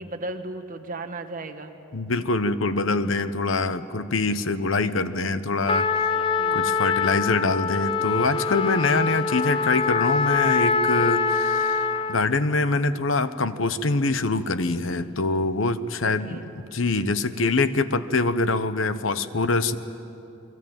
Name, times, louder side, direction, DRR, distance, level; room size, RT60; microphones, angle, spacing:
voice 1, 0.0-1.7 6.1-6.7 9.0-9.4 16.0-16.4, right 2 dB, 45° right, 6 dB, 1.6 m, -36 dB
voice 2, 1.9-6.1 6.5-16.4 16.7-19.8, left 3 dB, 80° left, 13 dB, 1.0 m, -24 dB
Trumpet, 5.7-12.2, left 5 dB, 25° left, 0.7 m, -24 dB
29.0 x 22.0 x 9.1 m, 2.8 s
head